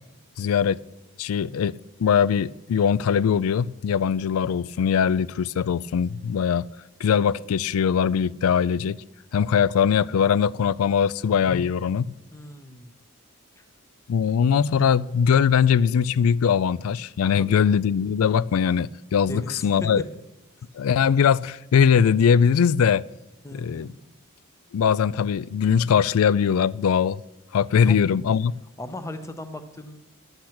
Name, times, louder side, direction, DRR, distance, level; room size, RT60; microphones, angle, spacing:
voice 1, 0.4-0.8 1.2-6.6 7.0-9.0 9.3-12.1 14.1-20.0 20.7-23.0 23.5-23.9 24.7-27.2 27.5-28.5, left 7 dB, 85° left, 0.3 m, -21 dB
voice 2, 12.3-13.0 13.6-13.7 17.3-17.6 19.3-20.0 23.4-23.9 27.8-28.0 28.8-30.0, left 1 dB, 15° left, 0.8 m, -37 dB
12.0 x 8.0 x 5.8 m
head